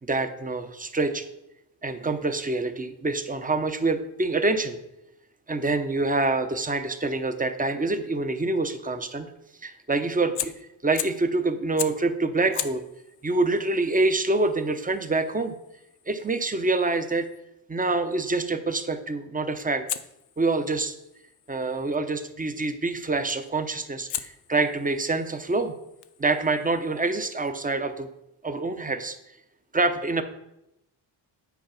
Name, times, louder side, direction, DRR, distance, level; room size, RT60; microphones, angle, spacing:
voice 1, 0.0-1.3 1.8-4.8 5.5-9.3 9.6-12.8 13.2-15.6 16.1-17.3 17.7-19.8 20.4-20.9 21.5-25.7 26.2-28.1 28.4-29.2 29.7-30.2, right 3 dB, 15° right, 9 dB, 0.8 m, -26 dB
Fire, 10.3-11.3 11.8-12.1 12.5-17.4 19.9-22.0 23.3-23.6 24.1-27.5, left 11 dB, 55° left, 0.7 m, -39 dB
9.3 x 4.7 x 5.8 m, 0.86 s
cardioid pair, 100°, 49 cm